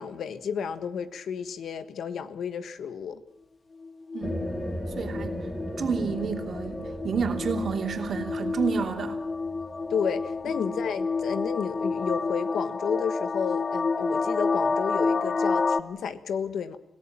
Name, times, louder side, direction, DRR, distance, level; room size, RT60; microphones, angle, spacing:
voice 1, 0.0-3.2 9.9-16.8, left 7 dB, 75° left, 11 dB, 1.5 m, -32 dB
sound 1, 3.8-15.8, left 4 dB, 30° left, 0.8 m, -29 dB
voice 2, 4.1-4.4 5.0-5.4 5.8-9.2 10.7-10.8, right 6 dB, 55° right, 4 dB, 3.0 m, -30 dB
sound 2, 4.2-11.5, equal, 15° left, 3.5 m, -37 dB
27.5 x 17.5 x 7.5 m, 0.79 s
wide cardioid pair, 140°, 0 cm